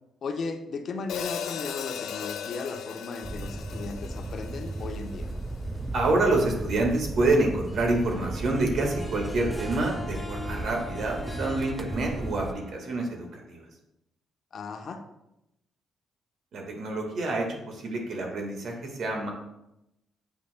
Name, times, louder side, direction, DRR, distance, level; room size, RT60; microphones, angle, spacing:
voice 1, 0.2-5.3 14.5-15.0, left 4 dB, 55° left, 5 dB, 0.8 m, -36 dB
Hi-hat, 1.1-5.4, left 8 dB, 80° left, 0.4 m, -37 dB
sound 1, 3.2-12.5, right 2 dB, 10° right, 0.4 m, -35 dB
voice 2, 5.9-13.7 16.5-19.3, right 2 dB, 65° right, 1 dB, 1.6 m, -27 dB
Harp, 7.7-13.5, left 2 dB, 5° left, 1.8 m, -42 dB
8.2 x 5.2 x 2.2 m, 0.87 s
cardioid pair, 90°, 0 cm